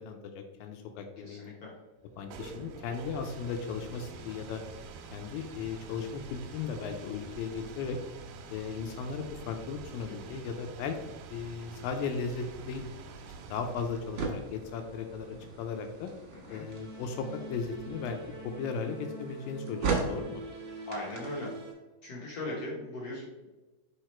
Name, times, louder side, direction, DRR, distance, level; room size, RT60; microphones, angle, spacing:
voice 1, 0.0-1.6 2.2-4.6 5.1-8.0 8.5-11.0 11.3-12.9 13.5-16.1 16.5-18.2 18.4-20.4, left 5 dB, 85° left, 5 dB, 2.0 m, -36 dB
voice 2, 1.2-1.7 10.3-10.4 16.3-16.6 20.8-21.5 22.0-23.5, left 1 dB, 70° left, -5 dB, 1.5 m, -39 dB
sound 1, 2.0-18.7, right 4 dB, 80° right, 2.2 m, -48 dB
sound 2, 11.5-21.6, right 4 dB, 65° right, 1.3 m, -40 dB
sound 3, 16.6-21.7, right 1 dB, 40° right, 1.0 m, -44 dB
5.6 x 4.8 x 4.4 m, 1.1 s
omnidirectional pair, 4.7 m